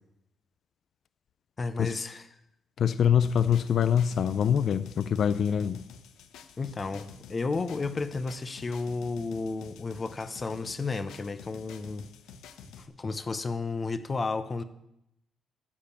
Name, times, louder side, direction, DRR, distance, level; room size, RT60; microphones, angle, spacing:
voice 1, 1.6-2.3 6.6-12.1 12.8-14.6, left 3 dB, 35° left, 11 dB, 0.9 m, -32 dB
voice 2, 2.8-5.8, left 8 dB, 60° left, 14 dB, 0.4 m, -24 dB
sound 1, 3.2-12.9, left 6 dB, 85° left, 0.8 m, -49 dB
13.5 x 5.2 x 7.2 m, 0.83 s
cardioid pair, 90°, 0 cm